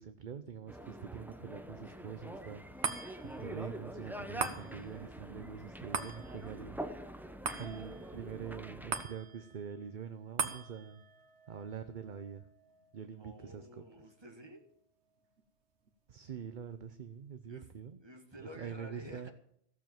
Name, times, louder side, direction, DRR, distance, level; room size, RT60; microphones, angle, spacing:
voice 1, 0.0-7.1 7.6-11.0 11.5-12.4 12.9-13.8 16.1-18.0 18.6-19.3, right 7 dB, 50° right, 10 dB, 0.8 m, -45 dB
sound 1, 0.7-9.0, right 1 dB, ahead, 0.7 m, -45 dB
sound 2, 2.8-15.4 15.9-16.0, right 5 dB, 85° right, 1.4 m, -43 dB
voice 2, 13.0-14.6 17.4-19.3, equal, 25° right, 5 dB, 1.8 m, -51 dB
15.0 x 7.1 x 7.6 m, 0.70 s
omnidirectional pair, 1.1 m